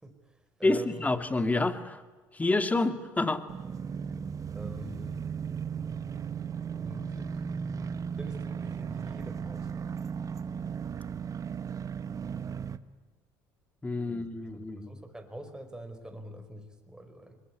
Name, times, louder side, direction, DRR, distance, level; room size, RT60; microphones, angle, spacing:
voice 1, 0.0-1.1 4.5-5.3 6.8-7.4 8.2-10.0 14.1-17.4, right 1 dB, 10° right, 7 dB, 4.9 m, -45 dB
voice 2, 0.6-2.0 2.3-3.4 13.8-14.9, left 2 dB, 15° left, 10 dB, 2.4 m, -28 dB
sound 1, 3.5-12.8, right 7 dB, 40° right, 1.4 m, -36 dB
24.0 x 21.5 x 9.7 m, 1.3 s
supercardioid pair, 80°, 9 cm